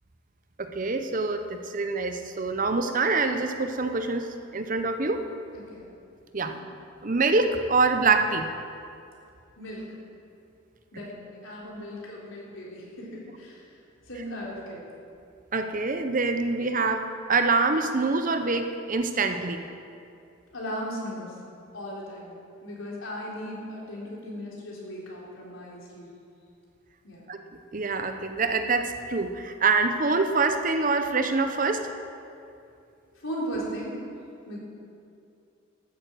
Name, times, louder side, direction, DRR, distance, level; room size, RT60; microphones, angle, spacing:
voice 1, 0.6-5.2 6.3-6.5 7.0-8.5 15.5-19.7 27.3-27.4 27.7-31.8, right 3 dB, 40° right, 7 dB, 0.8 m, -25 dB
voice 2, 9.6-10.0 10.9-13.6 14.1-14.8 20.5-21.4 21.7-26.1 27.0-27.2 33.2-34.0 34.5-34.6, equal, 75° left, -4 dB, 3.8 m, -37 dB
13.0 x 8.8 x 7.8 m, 2.6 s
head